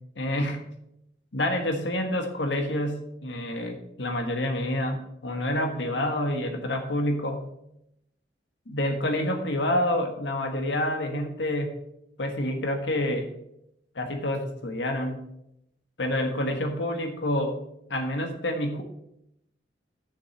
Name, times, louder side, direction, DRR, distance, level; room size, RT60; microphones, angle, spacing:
voice 1, 0.2-0.6 1.3-7.4 8.7-11.7 12.2-13.3 13.9-15.2 16.0-17.6 17.9-18.8, left 1 dB, 85° left, 5 dB, 1.4 m, -28 dB
7.1 x 6.5 x 7.0 m, 0.80 s
head